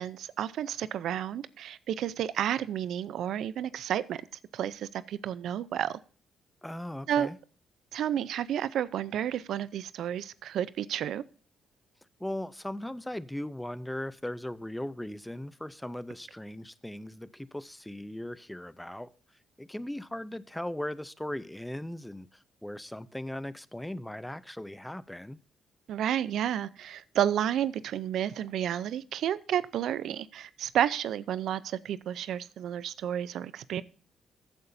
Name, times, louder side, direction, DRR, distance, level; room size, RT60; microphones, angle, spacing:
voice 1, 0.0-4.2 4.5-6.0 7.1-7.3 7.9-11.2 25.9-33.8, right 10 dB, 75° right, 0.5 m, -31 dB
voice 2, 6.6-7.4 12.2-19.1 19.6-25.4, left 1 dB, 5° left, 0.6 m, -38 dB
15.0 x 8.9 x 2.6 m
cardioid pair, 90°, 0 cm